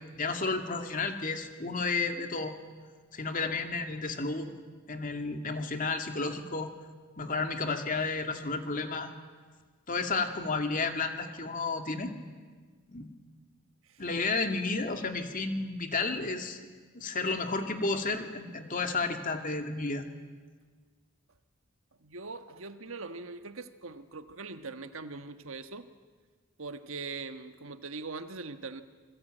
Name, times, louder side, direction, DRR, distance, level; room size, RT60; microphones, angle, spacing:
voice 1, 0.0-2.6 3.1-4.5 4.9-6.7 7.2-9.1 9.9-12.1 12.9-13.1 14.0-16.6 16.9-20.0, left 3 dB, 40° left, 6 dB, 2.3 m, -32 dB
voice 2, 22.0-25.9 26.6-28.8, right 4 dB, 70° right, 9 dB, 1.4 m, -41 dB
28.0 x 21.0 x 9.2 m, 1.5 s
head